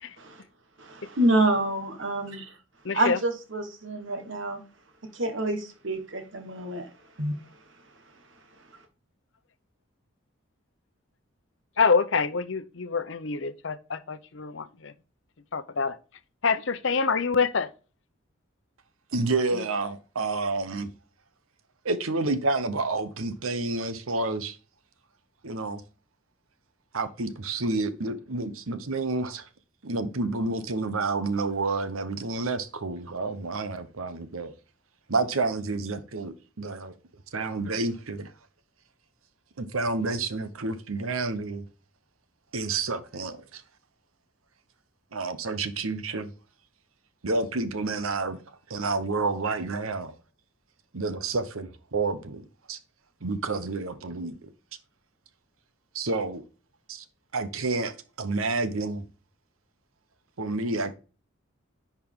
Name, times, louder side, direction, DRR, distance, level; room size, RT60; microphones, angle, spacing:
voice 1, 0.0-8.9, right 1 dB, 65° right, 1.6 m, -29 dB
voice 2, 11.8-14.9 15.5-16.0 16.4-17.7, left 5 dB, 65° left, 0.7 m, -26 dB
voice 3, 19.1-20.9 21.8-24.6 25.4-25.8 26.9-29.5 29.8-34.5 35.1-36.9 37.3-38.3 39.6-41.6 42.5-43.6 45.1-46.3 47.2-48.4 48.7-50.1 50.9-52.8 53.2-54.4 55.9-56.4 56.9-57.0 57.3-59.0 60.4-60.9, right 3 dB, 90° right, 1.0 m, -29 dB
10.5 x 4.6 x 3.6 m
head